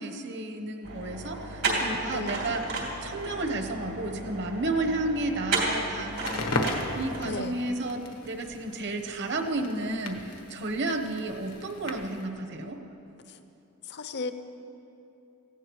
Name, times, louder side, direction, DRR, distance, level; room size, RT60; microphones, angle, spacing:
voice 1, 0.0-6.5 6.9-10.2 10.5-12.8, right 2 dB, 55° right, 5 dB, 1.0 m, -32 dB
sound 1, 0.8-7.4, right 2 dB, 85° right, 3.0 m, -33 dB
Crackle, 6.1-12.3, left 2 dB, 85° left, 1.3 m, -36 dB
voice 2, 7.3-7.6 9.9-10.0 11.0-11.2 13.3-13.4 13.9-14.3, left 3 dB, 50° left, 9 dB, 0.7 m, -35 dB
18.0 x 15.5 x 3.1 m, 2.9 s
head